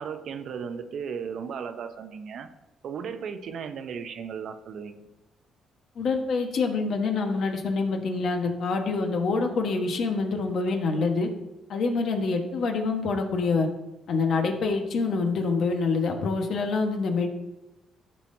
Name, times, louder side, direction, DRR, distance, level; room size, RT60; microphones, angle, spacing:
voice 1, 0.0-2.5 2.8-5.1, right 6 dB, 65° right, 8 dB, 0.7 m, -35 dB
voice 2, 5.9-11.3 11.7-13.7 14.1-17.3, left 4 dB, 65° left, 3 dB, 1.3 m, -26 dB
13.5 x 5.7 x 2.7 m, 1.0 s
cardioid pair, 90°, 0 cm